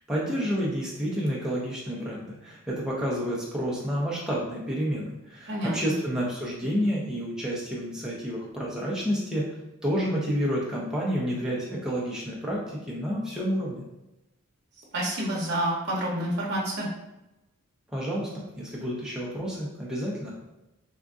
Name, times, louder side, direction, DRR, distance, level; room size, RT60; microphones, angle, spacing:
voice 1, 0.1-9.4 9.8-13.8 17.9-20.3, equal, 5° right, -6 dB, 0.6 m, -29 dB
voice 2, 5.5-5.8 14.9-16.9, right 1 dB, 50° right, -4 dB, 0.8 m, -28 dB
3.5 x 2.5 x 2.4 m, 0.95 s
head